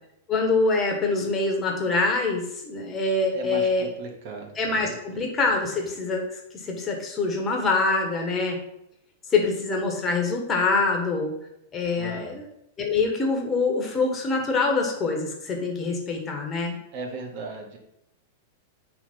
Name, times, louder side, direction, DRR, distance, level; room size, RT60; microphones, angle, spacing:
voice 1, 0.3-3.9 4.6-6.2 6.6-8.6 9.3-11.3 11.7-12.4 12.8-16.7, left 3 dB, 25° left, 1 dB, 1.4 m, -25 dB
voice 2, 3.3-4.5 5.1-5.2 11.9-12.4 16.9-17.8, right 3 dB, 50° right, 2 dB, 1.2 m, -36 dB
5.2 x 3.5 x 5.2 m, 0.79 s
figure-of-eight pair, 100°, 0 cm